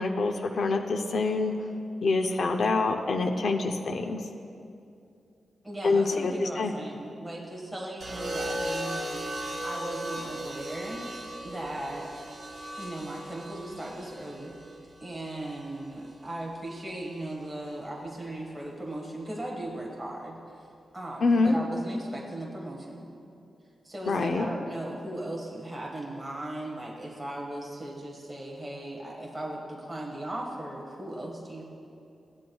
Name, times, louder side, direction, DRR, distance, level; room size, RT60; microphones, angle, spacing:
voice 1, 0.0-1.5 2.0-4.2 5.8-6.7 21.2-21.6 24.1-24.5, left 3 dB, 65° left, 4 dB, 0.6 m, -26 dB
voice 2, 5.6-9.2 9.6-11.1 11.4-12.1 12.8-14.5 15.0-20.4 20.9-23.1 23.8-31.6, right 1 dB, 10° right, -3 dB, 1.5 m, -37 dB
sound 1, 8.0-16.2 17.4-17.8, right 1 dB, 40° right, 2.8 m, -37 dB
17.0 x 10.5 x 2.3 m, 2.5 s
wide cardioid pair, 130°, 0 cm